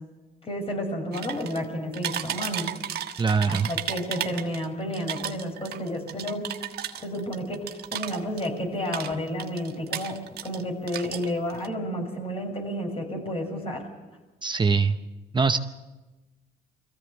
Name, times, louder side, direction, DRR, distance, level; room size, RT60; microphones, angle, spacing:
voice 1, 0.4-2.7 3.5-6.5 7.0-13.8, equal, 35° left, 3 dB, 6.4 m, -31 dB
sound 1, 1.1-1.7 1.9-4.7 4.9-8.6 8.9-10.6 10.9-11.7, right 10 dB, 65° right, 1.4 m, -34 dB
voice 2, 3.2-3.7 14.4-15.0 15.3-15.6, right 5 dB, 25° right, 9 dB, 0.8 m, -22 dB
22.5 x 16.0 x 8.1 m, 1.1 s
supercardioid pair, 75°, 18 cm